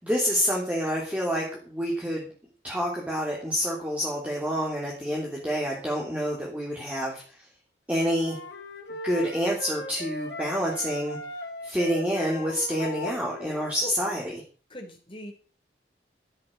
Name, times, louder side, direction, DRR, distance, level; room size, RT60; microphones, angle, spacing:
voice 1, 0.0-2.3 2.6-7.2 7.9-8.4 9.0-11.2 11.6-14.3, equal, 10° right, -3 dB, 3.1 m, -28 dB
sound 1, 8.1-13.9, left 1 dB, 75° left, 3.1 m, -38 dB
voice 2, 14.7-15.3, equal, 30° left, 3 dB, 3.5 m, -39 dB
13.0 x 7.7 x 7.7 m, 0.40 s
head